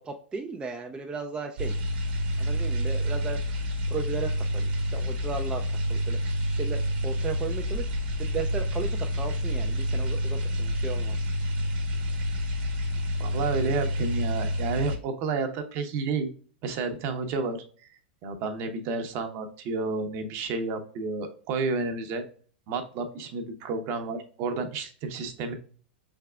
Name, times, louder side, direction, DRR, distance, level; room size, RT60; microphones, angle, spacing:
voice 1, 0.0-1.7 2.4-3.6 3.9-11.3, right 5 dB, 15° right, 2 dB, 0.4 m, -36 dB
sound 1, 1.6-15.0, equal, 60° right, 1.1 m, -28 dB
voice 2, 13.2-16.3 16.6-22.2 22.7-25.5, right 4 dB, 45° right, 6 dB, 0.8 m, -31 dB
4.6 x 3.5 x 2.3 m, 0.42 s
hypercardioid pair, 115°, 6 cm